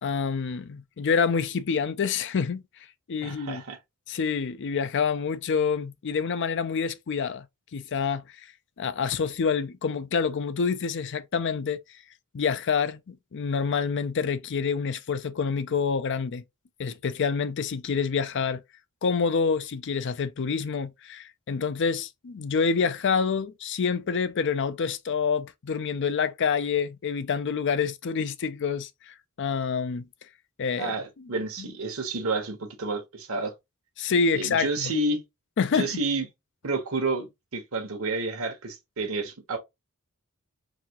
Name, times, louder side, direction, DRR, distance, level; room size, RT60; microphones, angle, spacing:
voice 1, 0.0-2.6 3.1-3.6 4.1-7.5 7.7-8.5 8.8-11.8 12.3-16.4 16.8-18.6 19.0-30.0 30.6-30.9 31.6-31.7 34.0-34.9 35.6-36.0, left 5 dB, 55° left, 0.5 m, -27 dB
voice 2, 3.2-3.8 30.8-33.5 34.3-35.2 35.7-36.3 36.6-39.6, right 3 dB, 70° right, 1.0 m, -30 dB
4.1 x 2.8 x 2.9 m
head